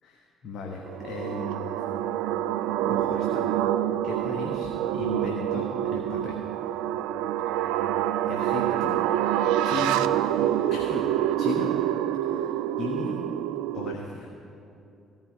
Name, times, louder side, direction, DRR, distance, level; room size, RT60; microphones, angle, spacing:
voice 1, 0.0-1.8 2.8-3.5 4.0-6.4 7.5-7.8 8.2-9.0 9.6-10.0 10.7-11.1 11.4-11.7 12.2-12.5 12.8-13.2 13.7-14.3, left 4 dB, 55° left, 0 dB, 1.3 m, -36 dB
sound 1, 0.9-13.9, right 11 dB, 70° right, 0.3 m, -27 dB
16.0 x 5.6 x 9.8 m, 2.7 s
figure-of-eight pair, 50°, 0 cm